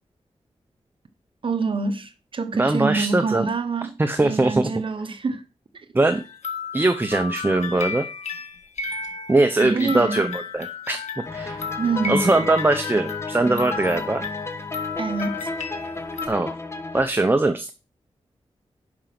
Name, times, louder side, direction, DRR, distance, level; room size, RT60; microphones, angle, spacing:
voice 1, 1.4-3.9 4.2-5.4 9.6-10.2 11.8-12.5 15.0-15.5, right 4 dB, 50° right, 1.0 m, -26 dB
voice 2, 2.5-3.5 4.0-4.7 5.9-6.2 6.7-8.1 9.3-11.0 11.3-11.6 12.1-14.2 16.3-16.6 16.9-17.7, right 2 dB, 20° right, 0.7 m, -21 dB
sound 1, 6.1-16.3, left 4 dB, 90° left, 1.6 m, -33 dB
sound 2, 11.3-17.1, left 3 dB, 25° left, 1.2 m, -32 dB
11.0 x 5.1 x 6.0 m
wide cardioid pair, 120°, 11 cm